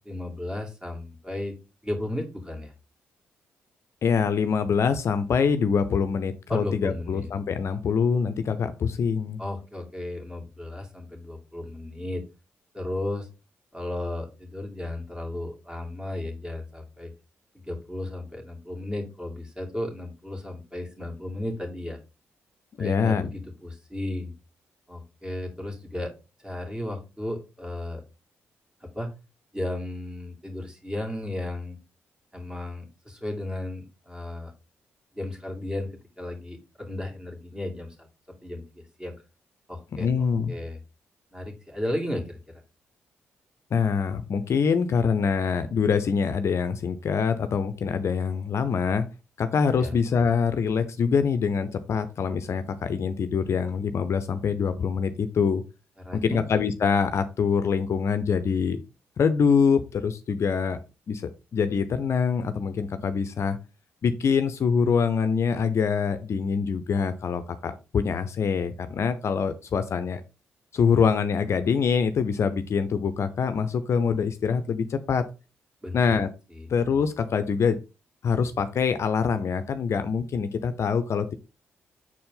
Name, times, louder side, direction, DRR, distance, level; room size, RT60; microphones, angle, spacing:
voice 1, 0.0-1.6 1.8-2.7 6.5-7.3 9.4-12.2 12.7-13.3 13.7-17.1 17.6-22.0 22.8-24.3 24.9-26.1 26.4-28.0 28.8-29.1 29.5-31.8 32.3-34.5 35.1-39.1 39.7-40.1 40.5-40.8 41.3-42.6 49.8-50.0 56.0-56.4 75.8-76.0 76.5-76.7, left 1 dB, 15° right, 2 dB, 2.5 m, -34 dB
voice 2, 4.0-9.4 22.8-23.3 40.0-40.6 43.7-49.1 49.4-55.6 56.1-58.8 59.2-60.8 61.1-61.2 61.5-63.6 64.0-70.2 70.7-75.2 75.9-76.3 76.7-77.8 78.2-81.3, left 6 dB, 60° left, 11 dB, 0.6 m, -24 dB
6.1 x 4.3 x 3.8 m, 0.29 s
hypercardioid pair, 45°, 5 cm